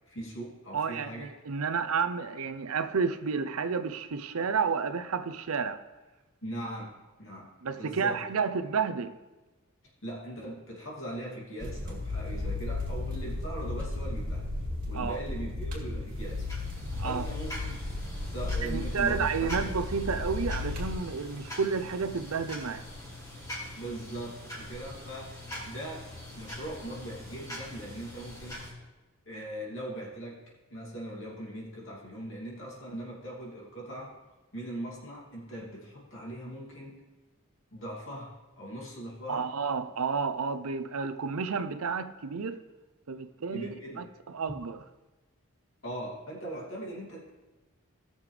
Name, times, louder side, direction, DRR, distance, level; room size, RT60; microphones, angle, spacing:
voice 1, 0.1-1.3 6.4-8.4 10.0-14.5 14.9-16.5 17.0-17.8 18.3-19.7 23.7-26.1 26.3-28.6 29.3-30.4 30.7-34.2 34.5-37.0 37.7-39.5 43.5-44.1 45.8-47.3, right 1 dB, 65° left, 2.6 m, -40 dB
voice 2, 0.7-5.8 7.6-9.2 14.9-15.2 16.9-17.3 18.6-22.9 39.3-42.6 43.1-44.0 44.3-44.8, right 5 dB, 85° right, 0.6 m, -31 dB
sound 1, 11.6-21.0, left 2 dB, 40° right, 2.4 m, -34 dB
sound 2, 16.0-28.7, left 1 dB, 15° left, 2.3 m, -43 dB
17.0 x 6.7 x 3.3 m
head